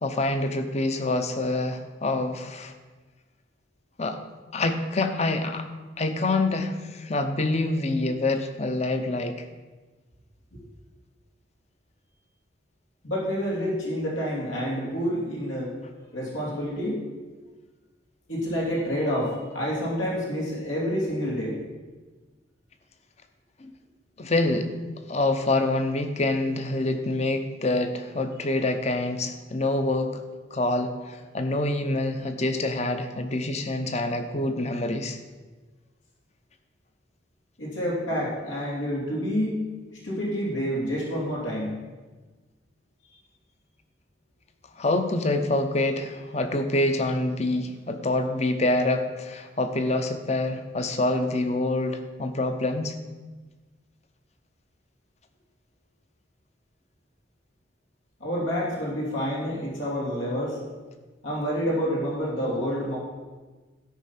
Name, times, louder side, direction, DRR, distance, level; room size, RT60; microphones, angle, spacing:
voice 1, 0.0-2.7 4.0-4.2 4.5-5.7 6.0-9.5 23.6-23.7 24.2-24.7 25.1-30.2 30.5-35.2 44.8-53.0, left 2 dB, 35° left, 7 dB, 0.8 m, -26 dB
voice 2, 13.0-15.7 16.1-17.0 18.3-21.6 37.6-39.7 40.0-41.8 58.2-60.6 61.2-63.0, equal, 90° left, -4 dB, 3.0 m, -28 dB
13.0 x 5.5 x 5.8 m, 1.3 s
head